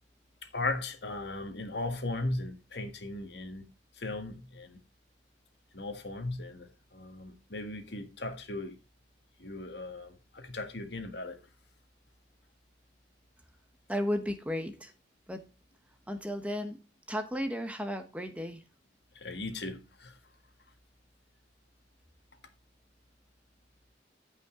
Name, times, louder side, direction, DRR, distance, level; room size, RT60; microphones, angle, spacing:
voice 1, 0.4-3.7 3.9-4.8 5.7-8.8 9.4-11.4 19.1-20.2, left 2 dB, 65° left, 1.8 m, -37 dB
voice 2, 13.9-14.9 15.3-15.4 16.1-16.8 17.1-18.6, equal, 5° right, 1.1 m, -34 dB
15.0 x 5.6 x 3.8 m
head